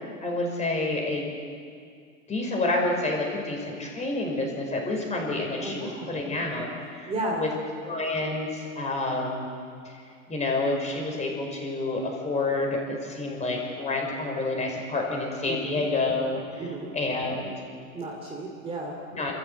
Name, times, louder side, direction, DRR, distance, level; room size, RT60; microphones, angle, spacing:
voice 1, 0.2-1.2 2.3-7.5 7.8-9.5 9.9-10.0 10.3-16.7 16.9-17.5 19.1-19.3, left 2 dB, 15° left, 1 dB, 5.2 m, -29 dB
voice 2, 5.6-6.1 7.1-7.5 15.5-15.8 16.6-16.9 17.9-19.0, right 1 dB, 15° right, 0 dB, 2.7 m, -33 dB
27.5 x 14.5 x 8.2 m, 2.2 s
hypercardioid pair, 130°, 42 cm